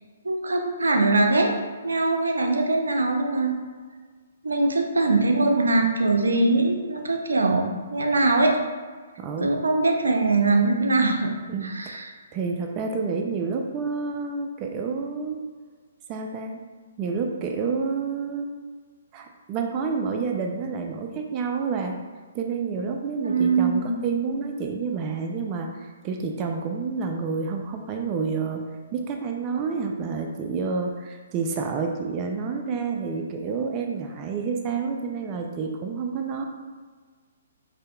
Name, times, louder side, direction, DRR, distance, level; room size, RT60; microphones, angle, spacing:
voice 1, 0.2-1.5 1.8-3.5 4.4-8.5 9.4-11.3 11.6-12.0 23.2-24.0, right 2 dB, 85° right, 3 dB, 0.5 m, -22 dB
voice 2, 9.2-9.5 11.5-12.0 12.3-15.4 16.1-16.6 17.0-18.5 19.1-22.0 22.3-36.5, right 5 dB, 30° right, 3 dB, 0.3 m, -29 dB
5.0 x 2.7 x 2.2 m, 1.5 s
hypercardioid pair, 135°, 0 cm